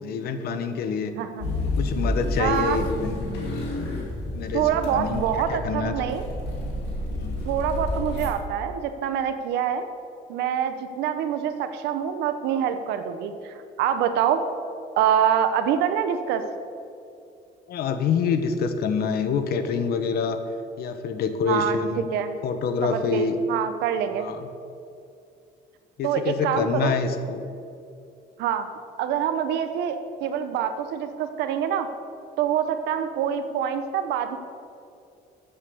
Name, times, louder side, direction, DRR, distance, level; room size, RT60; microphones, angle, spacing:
voice 1, 0.0-1.1 1.6-3.2 4.3-6.2 7.1-7.4 17.7-20.4 20.8-22.1 22.4-23.4 24.2-24.5 26.0-27.4, left 5 dB, 65° left, 9 dB, 1.0 m, -26 dB
sound 1, 1.4-8.3, left 1 dB, 85° left, 2.5 m, -30 dB
voice 2, 2.4-2.8 4.5-6.3 7.4-9.9 10.3-14.4 15.0-16.4 21.5-21.8 22.1-22.3 22.8-24.3 26.0-27.0 28.4-28.7 29.0-31.9 32.4-34.4, right 9 dB, 85° right, 8 dB, 0.7 m, -25 dB
8.0 x 7.7 x 6.7 m, 2.5 s
cardioid pair, 110°, 17 cm